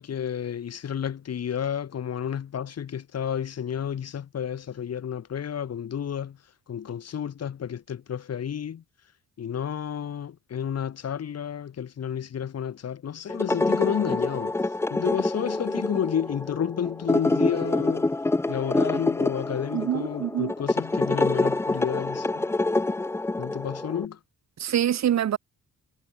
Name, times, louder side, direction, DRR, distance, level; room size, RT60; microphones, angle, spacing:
voice 1, 0.0-6.4 6.7-8.8 9.4-14.5 14.9-18.2 18.5-22.5 23.4-24.2, left 8 dB, 50° left, 2.7 m, -31 dB
sound 1, 13.3-24.1, left 2 dB, 10° left, 0.4 m, -26 dB
voice 2, 19.7-20.5 24.6-25.4, right 10 dB, 55° right, 1.1 m, -25 dB
wide cardioid pair, 175°, 33 cm